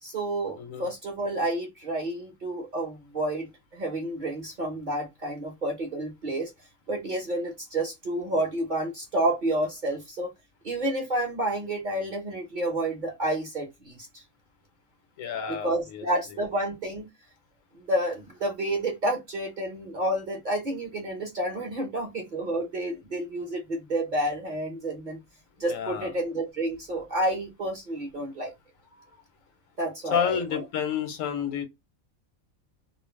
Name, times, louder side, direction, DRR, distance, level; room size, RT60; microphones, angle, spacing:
voice 1, 0.0-6.5 6.9-10.3 10.6-14.2 15.5-17.0 17.9-25.2 25.6-28.5 28.9-29.1 29.8-30.6, right 1 dB, 45° right, 0.8 m, -30 dB
voice 2, 15.2-16.0 25.6-26.1 30.1-31.6, left 8 dB, 75° left, 1.0 m, -30 dB
2.5 x 2.1 x 3.1 m
omnidirectional pair, 1.5 m